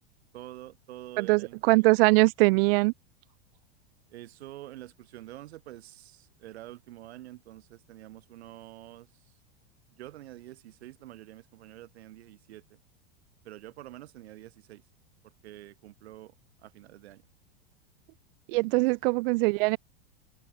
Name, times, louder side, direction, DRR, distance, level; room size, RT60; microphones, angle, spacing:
voice 1, 0.3-2.0 4.1-9.4 9.9-12.6 13.4-14.8 15.4-17.2 18.5-18.9, right 15 dB, 80° right, 7.4 m, -47 dB
voice 2, 1.2-2.9 18.5-19.8, right 25 dB, 60° right, 1.1 m, -22 dB
supercardioid pair, 130°, 32 cm